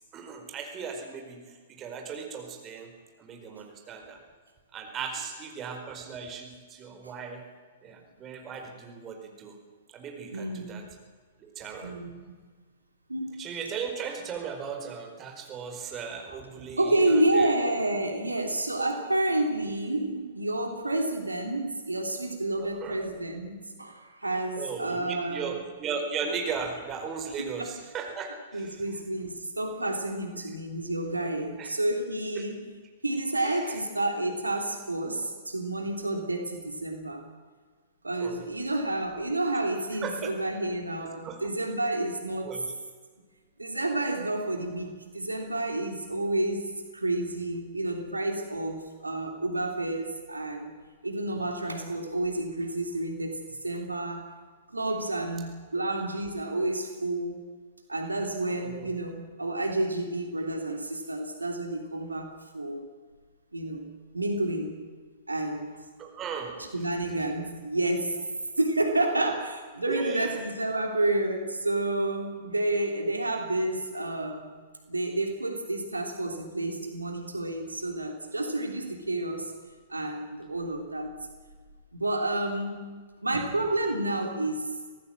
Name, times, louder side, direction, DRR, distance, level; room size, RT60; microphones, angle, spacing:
voice 1, 0.1-1.4 1.7-2.9 3.2-4.2 4.7-7.4 7.8-9.5 9.9-10.8 11.4-12.0 13.4-17.5 22.6-23.0 24.6-28.8 31.6-31.7 32.3-32.5 33.4-33.7 38.2-38.4 40.0-40.3 41.2-41.5 42.4-42.7 58.6-58.9 66.0-66.6 69.8-70.4, right 6 dB, 25° right, 3 dB, 4.6 m, -37 dB
voice 2, 10.3-10.9 11.8-12.2 13.1-13.5 16.3-16.4 16.8-25.6 27.4-27.7 28.5-32.6 33.0-37.2 38.0-42.5 43.6-50.7 51.0-54.3 54.7-57.4 57.9-62.9 63.5-63.9 64.1-64.8 65.3-65.8 66.6-68.3 68.6-74.5 74.9-79.5 79.9-81.1 81.9-82.9 83.2-84.8, right 2 dB, 80° right, 4 dB, 3.0 m, -30 dB
24.5 x 18.0 x 7.5 m, 1.5 s
figure-of-eight pair, 110°, 0 cm